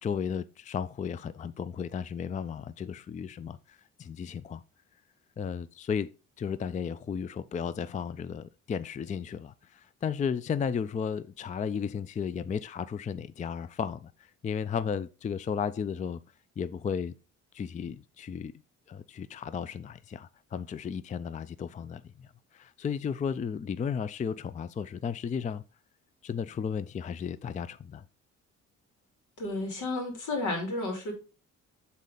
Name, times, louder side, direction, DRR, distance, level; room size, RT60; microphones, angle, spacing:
voice 1, 0.0-4.6 5.4-6.1 6.4-16.2 16.6-17.1 17.5-18.5 18.9-22.3 22.5-25.6 26.2-28.0, left 7 dB, 25° left, 0.4 m, -34 dB
voice 2, 29.4-31.1, left 2 dB, 80° left, 2.9 m, -32 dB
8.0 x 4.2 x 3.9 m
cardioid pair, 90°, 30 cm